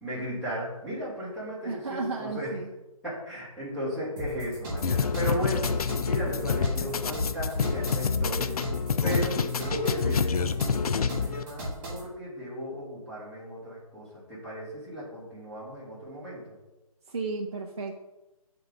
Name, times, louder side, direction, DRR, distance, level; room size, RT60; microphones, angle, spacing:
voice 1, 0.0-2.5 3.0-5.7 6.0-8.5 9.0-16.4, equal, ahead, -13 dB, 1.4 m, -35 dB
voice 2, 1.6-2.7 17.1-18.0, right 4 dB, 45° right, -1 dB, 0.6 m, -33 dB
sound 1, 4.2-12.1, equal, 20° right, 2.1 m, -36 dB
sound 2, 4.8-11.4, left 5 dB, 75° left, 0.4 m, -27 dB
7.6 x 3.9 x 3.6 m, 1.1 s
hypercardioid pair, 170°, 19 cm